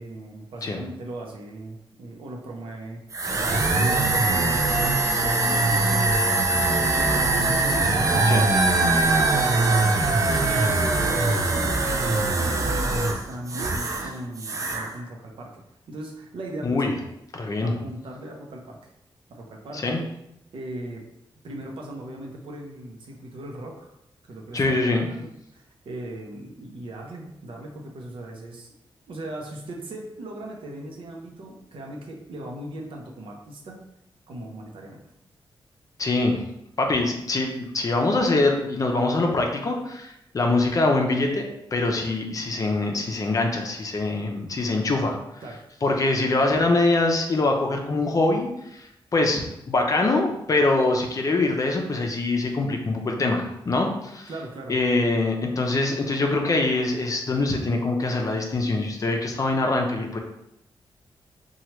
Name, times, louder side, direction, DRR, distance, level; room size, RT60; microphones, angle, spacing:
voice 1, 0.0-3.0 3.7-9.9 10.3-16.9 17.6-18.9 19.3-20.0 20.5-21.1 21.4-23.9 24.3-24.8 25.1-28.7 29.1-33.8 34.3-35.0 45.4-45.6 54.3-54.8, right 1 dB, 75° right, 0 dB, 0.6 m, -38 dB
sound 1, 3.1-14.1 14.4-14.9, right 2 dB, 40° right, 0.4 m, -22 dB
voice 2, 17.4-17.7 19.7-20.0 24.5-25.1 36.0-36.4 36.8-45.2 45.8-49.4 49.7-54.3 54.7-60.2, left 2 dB, 40° left, 2 dB, 0.5 m, -24 dB
3.0 x 2.3 x 2.9 m, 0.82 s
wide cardioid pair, 100°, 9 cm